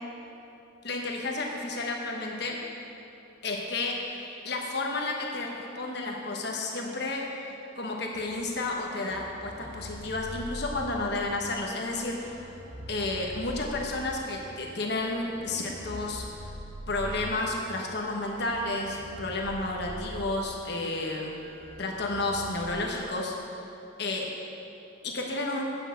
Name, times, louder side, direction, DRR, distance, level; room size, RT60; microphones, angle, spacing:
voice 1, 0.8-2.6 3.4-12.4 12.9-16.2 16.9-21.3 21.8-23.3 24.0-24.3 25.0-25.6, left 2 dB, 55° left, -1 dB, 1.1 m, -31 dB
sound 1, 8.1-22.6, equal, 55° right, 1.9 m, -44 dB
8.9 x 6.5 x 8.0 m, 2.9 s
head